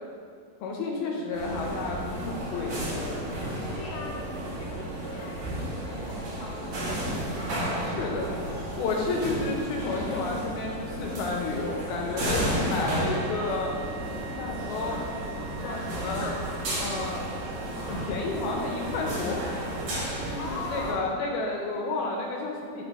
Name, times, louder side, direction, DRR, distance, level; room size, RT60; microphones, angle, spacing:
voice 1, 0.6-3.3 7.8-8.3 8.6-13.8 14.4-15.0 15.6-16.4 16.8-17.2 17.6-19.4 20.2-22.8, left 3 dB, 80° left, -1 dB, 2.5 m, -31 dB
sound 1, 1.3-20.9, right 1 dB, 60° right, 2.8 m, -33 dB
voice 2, 3.7-7.2 7.8-8.4 12.2-12.6 15.6-17.2 20.3-21.2, left 2 dB, 40° left, -9 dB, 1.2 m, -41 dB
sound 2, 12.9-20.8, right 10 dB, 75° right, 2.0 m, -47 dB
sound 3, 14.5-19.8, left 1 dB, 60° left, 3.0 m, -46 dB
11.0 x 4.3 x 3.5 m, 2.2 s
omnidirectional pair, 4.8 m